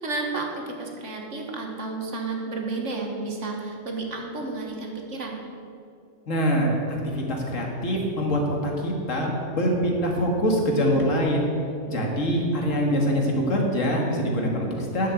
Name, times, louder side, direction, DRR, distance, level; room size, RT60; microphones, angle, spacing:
voice 1, 0.0-5.4, right 3 dB, 70° right, 1 dB, 1.9 m, -31 dB
voice 2, 6.3-11.5 11.9-15.1, equal, 80° left, 0 dB, 2.2 m, -24 dB
9.8 x 7.5 x 8.2 m, 2.4 s
omnidirectional pair, 1.3 m